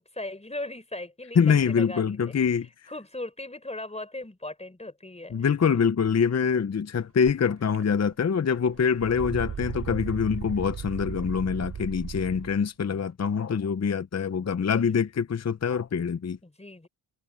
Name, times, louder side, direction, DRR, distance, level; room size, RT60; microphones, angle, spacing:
voice 1, 0.1-2.3 2.9-5.8 14.6-14.9 16.4-16.9, left 2 dB, 15° left, 4.6 m, -38 dB
voice 2, 1.4-2.7 5.3-16.4, left 6 dB, 35° left, 0.9 m, -25 dB
sound 1, 7.2-7.3 7.7-8.3 8.6-12.6, right 7 dB, 60° right, 5.0 m, -36 dB
cardioid pair, 75°, 47 cm